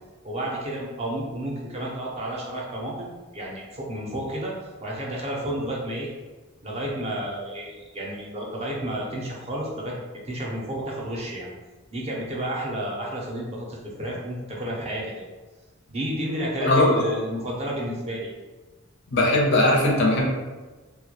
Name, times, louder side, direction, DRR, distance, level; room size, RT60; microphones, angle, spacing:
voice 1, 0.2-4.5 4.8-6.1 6.6-9.9 10.3-11.5 11.9-15.3 15.9-18.3, right 1 dB, 30° right, -3 dB, 0.4 m, -31 dB
voice 2, 16.6-17.1 19.1-20.3, left 1 dB, 55° left, -2 dB, 0.5 m, -19 dB
2.2 x 2.0 x 2.8 m, 1.3 s
head